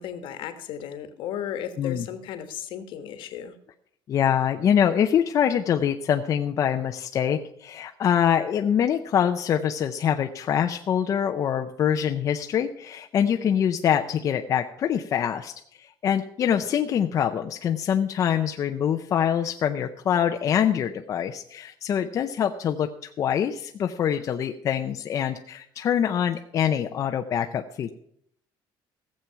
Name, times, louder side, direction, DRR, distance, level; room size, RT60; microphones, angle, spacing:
voice 1, 0.0-3.6, left 9 dB, 65° left, 9 dB, 1.3 m, -35 dB
voice 2, 4.1-15.5 16.0-27.9, left 9 dB, 35° left, 5 dB, 0.5 m, -24 dB
15.5 x 7.5 x 5.7 m, 0.69 s
cardioid pair, 170°, 9 cm